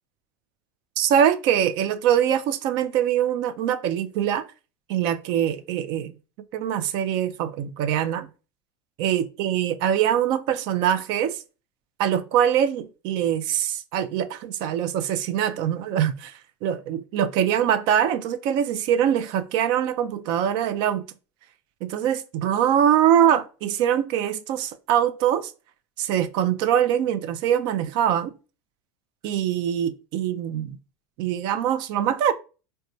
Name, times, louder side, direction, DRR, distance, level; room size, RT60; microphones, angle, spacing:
voice 1, 1.0-4.4 4.9-6.1 6.5-8.3 9.0-11.4 12.0-21.0 21.8-25.5 26.0-28.3 29.2-30.8 31.2-32.3, right 9 dB, 55° right, 0.4 m, -23 dB
4.1 x 2.2 x 2.6 m
supercardioid pair, 140°, 9 cm